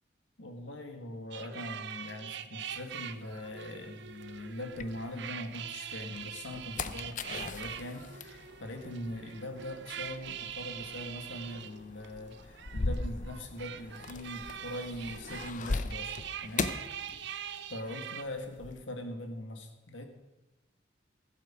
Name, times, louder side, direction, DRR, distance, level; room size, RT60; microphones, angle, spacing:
voice 1, 0.4-16.2 16.4-16.8 17.7-20.1, left 1 dB, 80° left, 5 dB, 1.7 m, -41 dB
sound 1, 1.3-18.2, right 9 dB, 65° right, 0.7 m, -43 dB
sound 2, 2.8-5.5 6.0-17.7 18.0-18.8, left 3 dB, 45° left, 0.6 m, -40 dB
15.0 x 8.3 x 6.0 m, 1.0 s
head